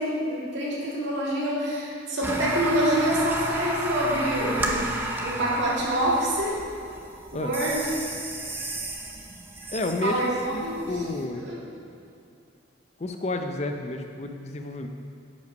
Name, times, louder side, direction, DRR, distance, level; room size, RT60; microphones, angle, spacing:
voice 1, 0.0-6.7 7.3-7.9 10.0-11.0 11.3-11.6, right 1 dB, 65° right, -6 dB, 2.3 m, -26 dB
sound 1, 2.2-11.3, right 1 dB, 10° right, 0.6 m, -33 dB
voice 2, 9.7-11.4 13.0-14.9, left 2 dB, 35° left, 5 dB, 0.5 m, -30 dB
10.5 x 5.2 x 5.3 m, 2.5 s
head